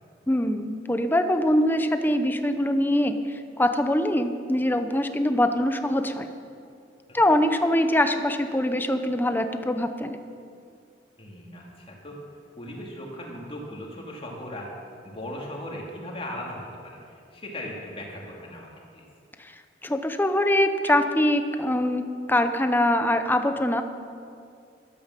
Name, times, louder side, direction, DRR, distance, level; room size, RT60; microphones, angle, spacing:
voice 1, 0.3-6.3 7.1-10.2 19.4-19.5 19.8-23.8, left 1 dB, 10° left, 8 dB, 0.8 m, -23 dB
voice 2, 11.2-12.1 12.6-14.7 15.0-19.0, left 1 dB, 30° left, -1 dB, 2.6 m, -38 dB
12.5 x 12.0 x 7.5 m, 2.3 s
head